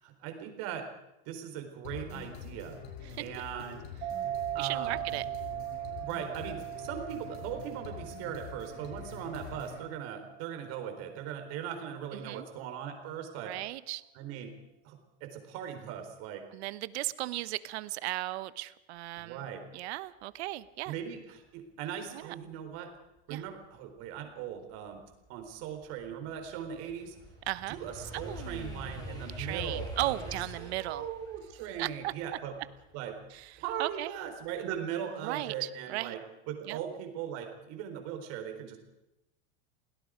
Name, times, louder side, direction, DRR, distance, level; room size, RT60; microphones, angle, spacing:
voice 1, 0.0-0.9 1.3-2.8 3.2-3.8 4.5-5.0 6.0-13.5 14.1-14.5 14.8-16.4 19.2-19.6 20.9-22.9 23.3-25.0 25.3-27.2 27.7-32.6 32.9-33.2 33.6-36.2 36.5-38.8, right 9 dB, 45° right, 5 dB, 4.2 m, -39 dB
sound 1, 1.8-9.8, left 7 dB, 65° left, 5.7 m, -45 dB
sound 2, 4.0-11.1, right 14 dB, 25° right, 2.6 m, -39 dB
voice 2, 4.6-5.3 12.2-12.5 13.4-14.0 16.5-19.5 19.7-20.9 22.1-22.3 23.3-23.4 27.5-27.8 28.1-31.0 31.8-32.1 33.3-34.1 35.2-36.1 36.7-36.8, right 17 dB, 65° right, 15 dB, 1.1 m, -36 dB
sound 3, 25.0-33.9 34.3-34.7, left 1 dB, 10° left, 5.6 m, -45 dB
28.5 x 18.0 x 5.1 m, 0.92 s
supercardioid pair, 160°, 35 cm